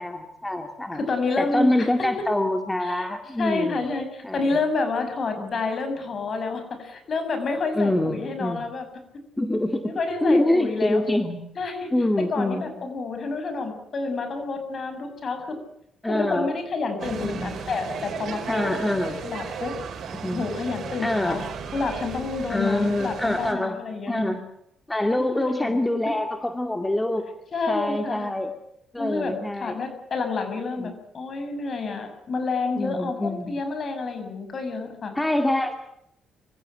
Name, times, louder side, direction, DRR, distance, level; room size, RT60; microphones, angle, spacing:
voice 1, 0.0-1.0 1.4-3.8 4.2-4.4 5.4-5.6 7.8-8.6 9.4-9.9 10.2-11.5 11.9-12.6 16.0-16.5 17.2-17.6 18.5-19.2 20.1-20.4 21.0-21.5 22.5-23.8 24.1-24.4 24.9-27.2 27.7-28.5 28.9-29.7 30.8-31.0 32.8-33.6 35.2-35.7, left 1 dB, 10° left, 6 dB, 2.3 m, -25 dB
voice 2, 0.9-2.1 2.8-3.1 3.4-8.9 9.9-11.0 11.6-15.6 16.0-18.7 19.2-19.7 20.3-21.4 21.7-24.3 25.6-26.1 27.5-28.3 29.0-29.3 29.6-35.1, left 3 dB, 45° left, 7 dB, 7.1 m, -29 dB
sound 1, 17.0-23.5, right 6 dB, 65° right, 5.1 m, -35 dB
25.0 x 15.5 x 9.1 m, 0.76 s
cardioid pair, 90°, 0 cm